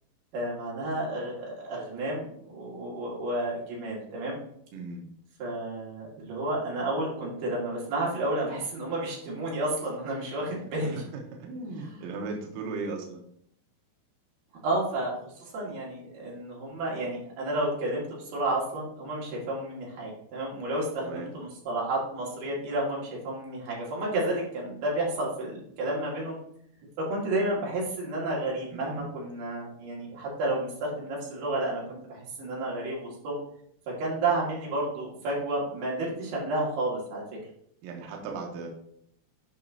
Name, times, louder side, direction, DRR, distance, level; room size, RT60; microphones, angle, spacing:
voice 1, 0.3-4.4 5.4-11.0 11.7-12.0 14.6-18.0 18.3-26.4 27.0-33.4 33.9-37.2, right 2 dB, 60° right, -4 dB, 3.7 m, -31 dB
voice 2, 4.7-5.0 10.5-10.9 11.4-13.2 21.0-21.3 28.7-29.1 37.8-38.7, right 3 dB, 80° right, 1 dB, 2.1 m, -37 dB
8.5 x 5.4 x 2.8 m, 0.69 s
omnidirectional pair, 5.1 m